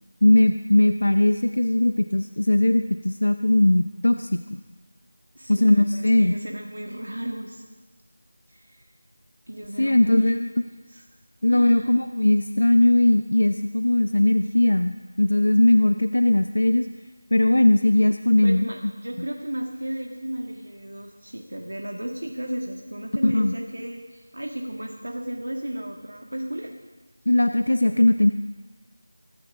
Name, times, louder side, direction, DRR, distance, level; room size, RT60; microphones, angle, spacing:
voice 1, 0.2-4.4 5.5-6.3 9.8-10.4 11.4-16.9 17.3-18.7 23.2-23.5 27.3-28.3, left 1 dB, 70° left, 9 dB, 0.6 m, -19 dB
voice 2, 5.3-7.6 8.5-8.8 9.5-10.4 10.9-11.0 11.5-11.9 18.4-26.8 27.3-27.4, right 1 dB, 85° right, 1 dB, 2.0 m, -34 dB
24.0 x 12.5 x 3.7 m, 1.3 s
figure-of-eight pair, 175°, 0 cm